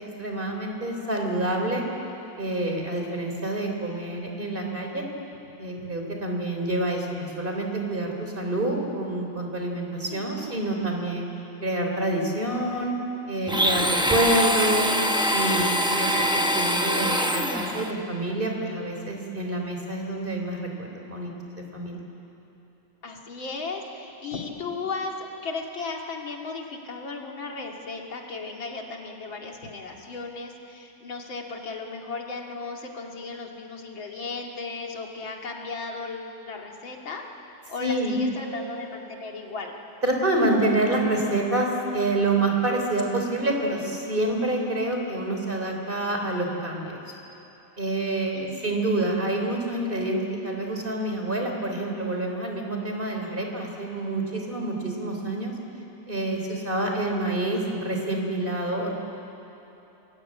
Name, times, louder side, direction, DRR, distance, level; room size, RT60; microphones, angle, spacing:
voice 1, 0.2-1.8 2.4-5.0 5.6-11.3 11.6-12.9 13.3-15.0 15.3-21.3 21.7-22.0 37.8-38.2 40.0-47.0 47.8-50.2 50.4-55.5 56.1-59.0, right 2 dB, 25° right, 2 dB, 3.6 m, -27 dB
voice 2, 10.1-10.6 23.0-37.2 37.7-39.7 48.3-48.8, left 4 dB, 70° left, 1 dB, 3.1 m, -36 dB
Domestic sounds home sounds, 13.5-17.9, equal, 5° right, 0.5 m, -24 dB
sound 1, 38.4-40.1 42.8-43.0, right 8 dB, 45° right, 3.2 m, -44 dB
27.5 x 21.5 x 8.6 m, 3.0 s
omnidirectional pair, 2.3 m